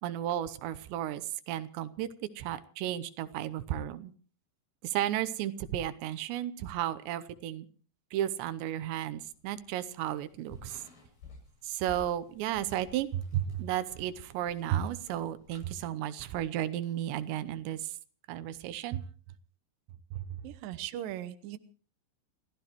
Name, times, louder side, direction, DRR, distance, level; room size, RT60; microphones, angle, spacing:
voice 1, 0.0-4.1 4.8-7.7 8.1-10.8 11.6-18.0 18.3-19.0 20.1-20.3, right 12 dB, 85° right, 14 dB, 3.2 m, -33 dB
sound 1, 9.0-15.7, left 4 dB, 65° left, 9.3 m, -54 dB
voice 2, 20.4-21.6, right 12 dB, 70° right, 12 dB, 2.4 m, -39 dB
29.5 x 14.5 x 3.1 m, 0.40 s
omnidirectional pair, 4.9 m